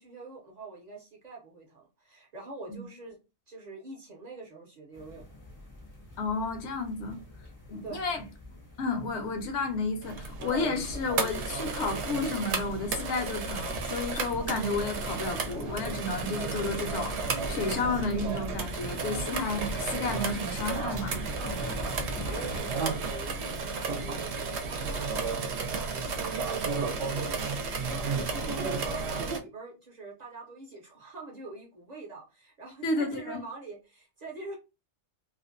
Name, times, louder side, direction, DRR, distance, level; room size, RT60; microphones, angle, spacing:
voice 1, 0.0-3.2 3.5-5.2 7.8-8.1 22.3-34.6, right 3 dB, 45° right, 0.6 m, -44 dB
sound 1, 4.9-22.6, left 1 dB, 25° left, 0.4 m, -45 dB
voice 2, 6.2-7.2 7.7-8.2 8.8-21.2 21.4-21.8 32.8-33.4, left 3 dB, 80° left, 0.9 m, -32 dB
sound 2, 10.0-29.4, right 4 dB, 75° right, 0.8 m, -33 dB
2.5 x 2.0 x 2.5 m
omnidirectional pair, 1.2 m